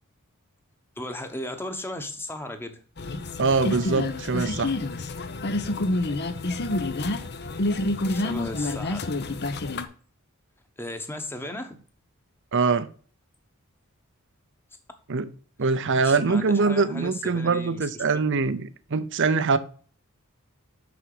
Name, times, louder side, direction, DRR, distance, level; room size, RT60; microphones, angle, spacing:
voice 1, 1.0-2.8 8.1-9.1 10.8-11.8 16.0-18.0, left 1 dB, 10° left, 1.1 m, -36 dB
sound 1, 3.0-9.8, left 2 dB, 50° left, 0.8 m, -28 dB
voice 2, 3.4-4.8 12.5-12.9 15.1-15.3 15.6-19.6, right 4 dB, 55° right, 0.7 m, -23 dB
6.3 x 6.1 x 4.8 m
head